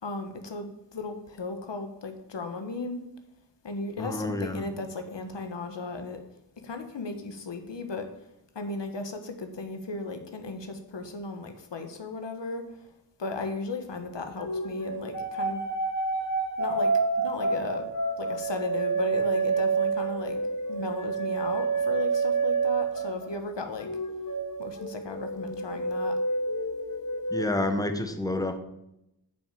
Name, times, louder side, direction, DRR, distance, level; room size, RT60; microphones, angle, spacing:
voice 1, 0.0-3.1 3.6-6.2 6.6-8.1 8.5-12.9 13.2-15.6 16.6-17.9 18.2-20.4 20.7-23.9 24.6-26.2, left 3 dB, 80° left, 6 dB, 1.4 m, -36 dB
voice 2, 4.0-4.7 27.3-28.6, left 2 dB, 10° left, 8 dB, 1.2 m, -29 dB
sound 1, 14.4-23.5 23.8-27.4, right 4 dB, 45° left, 1.6 m, -29 dB
9.2 x 5.8 x 7.6 m, 0.85 s
cardioid pair, 55°, 43 cm